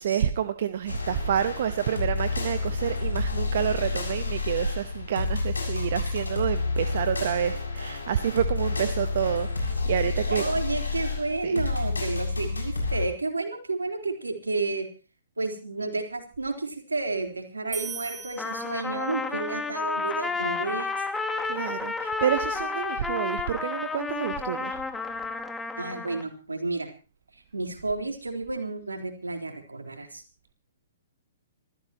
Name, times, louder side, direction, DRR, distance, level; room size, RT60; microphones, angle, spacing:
voice 1, 0.0-10.4 11.4-11.6 21.5-24.8, right 9 dB, 55° right, 12 dB, 1.0 m, -28 dB
sound 1, 0.9-13.1, left 3 dB, 85° left, 7.3 m, -29 dB
voice 2, 10.3-14.9 15.4-20.9 25.8-26.9 27.5-30.2, right 3 dB, 85° right, 4 dB, 3.8 m, -31 dB
sound 2, 17.7-19.3, right 5 dB, 10° right, 2.6 m, -39 dB
Trumpet, 18.4-26.3, left 4 dB, 5° left, 1.7 m, -31 dB
26.0 x 15.0 x 3.0 m, 0.35 s
figure-of-eight pair, 125°, 0 cm